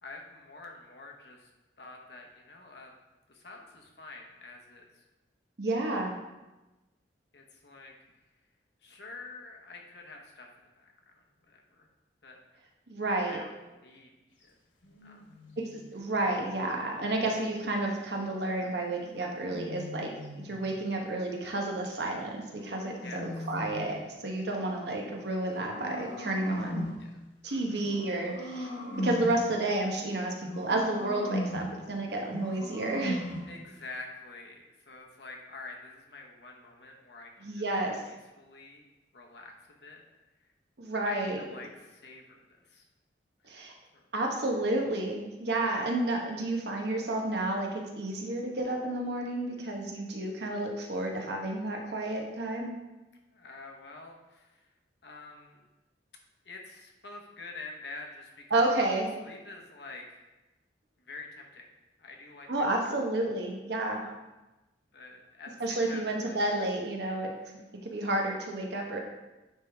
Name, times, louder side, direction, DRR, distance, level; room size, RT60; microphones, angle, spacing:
voice 1, 0.0-1.5 1.8-2.9 3.3-5.0 6.1-6.2 7.3-7.9 8.8-11.2 11.5-11.9 12.2-12.4 13.3-14.1 14.4-14.5 15.0-15.2 23.0-23.3 27.0-27.1 27.4-28.2 33.4-37.7 38.0-38.8 39.1-40.0 41.0-42.9 43.4-43.5 43.9-44.1 53.3-54.7 55.0-55.6 56.4-58.8 59.2-60.2 61.0-61.7 62.0-62.7 63.9-64.2 64.9-66.4 67.4-67.5, left 3 dB, 65° left, 1 dB, 1.0 m, -47 dB
voice 2, 5.6-6.1 12.9-13.4 15.6-26.8 27.4-28.7 29.0-33.2 37.4-38.0 40.8-41.4 43.5-43.7 44.1-52.7 58.5-59.1 62.5-64.1 65.6-67.3 67.8-69.0, right 2 dB, 65° right, 1 dB, 1.0 m, -31 dB
sound 1, 14.8-17.2 18.9-20.7 22.1-24.1 25.1-27.1 27.8-29.5 30.4-31.8 32.3-33.6, equal, 90° left, 1.2 m, -39 dB
9.5 x 3.6 x 3.4 m, 1.1 s
head